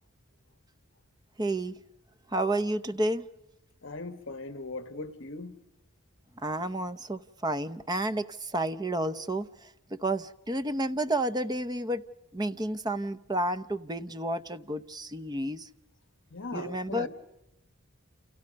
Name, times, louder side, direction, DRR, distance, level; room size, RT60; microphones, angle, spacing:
voice 1, 1.4-1.8 2.3-3.2 6.4-12.0 12.3-15.7 16.5-17.1, right 1 dB, 20° right, 0.8 m, -31 dB
voice 2, 3.8-5.6 16.3-17.1, left 3 dB, 60° left, 1.6 m, -39 dB
30.0 x 29.0 x 5.3 m
head